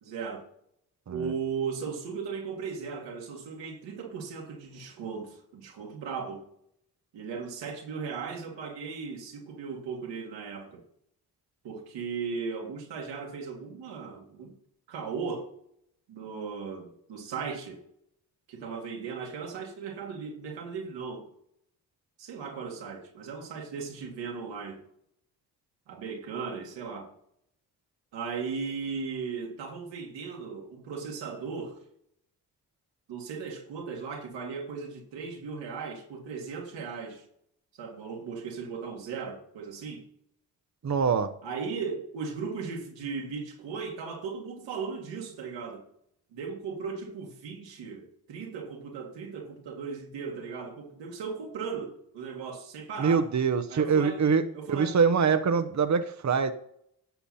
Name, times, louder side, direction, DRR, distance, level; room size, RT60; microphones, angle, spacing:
voice 1, 0.0-0.5 1.1-6.4 7.1-10.8 11.6-14.5 14.9-15.5 16.1-17.8 18.5-21.3 22.2-24.8 25.9-27.1 28.1-31.8 33.1-37.2 37.8-40.0 41.4-45.8 46.3-53.3 53.7-54.2 54.5-55.0, right 5 dB, 90° right, 2.1 m, -37 dB
voice 2, 40.8-41.3 53.0-56.5, right 5 dB, 40° right, 0.9 m, -24 dB
11.5 x 7.1 x 4.2 m
supercardioid pair, 40°, 42 cm